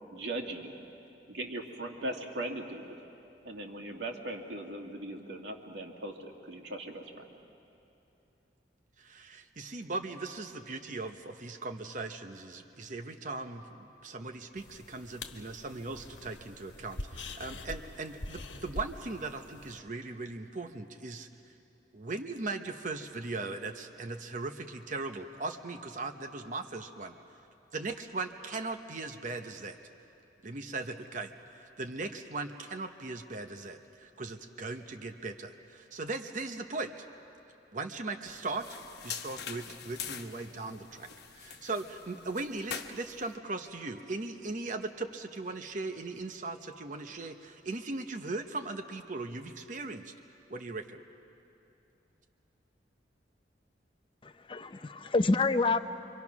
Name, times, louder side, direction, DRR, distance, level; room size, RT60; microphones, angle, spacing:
voice 1, 0.1-0.7 1.3-2.9 3.4-7.3, right 1 dB, 90° right, 2 dB, 2.2 m, -39 dB
voice 2, 9.0-21.5 21.9-27.1 27.7-29.8 30.4-37.0 37.7-38.7 39.0-50.1 50.5-51.0, right 3 dB, 45° right, 6 dB, 0.8 m, -39 dB
sound 1, 14.6-19.8, left 2 dB, 85° left, 1.3 m, -44 dB
disposable gloves, 38.3-43.3, left 7 dB, 60° left, 1.1 m, -44 dB
voice 3, 54.2-55.8, left 3 dB, 30° left, 10 dB, 0.6 m, -28 dB
25.5 x 24.5 x 6.0 m, 2.7 s
head